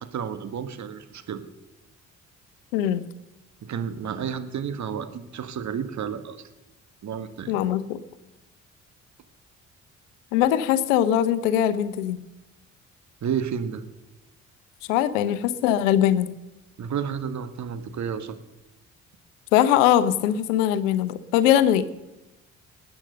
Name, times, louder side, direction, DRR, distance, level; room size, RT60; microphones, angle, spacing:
voice 1, 0.0-1.4 3.6-6.4 7.0-7.5 13.2-13.8 16.8-18.4, right 7 dB, 45° right, 10 dB, 1.5 m, -31 dB
voice 2, 7.5-8.0 10.3-12.2 14.9-16.3 19.5-21.9, left 11 dB, 70° left, 14 dB, 0.9 m, -21 dB
20.0 x 9.1 x 6.6 m, 1.0 s
figure-of-eight pair, 45°, 39 cm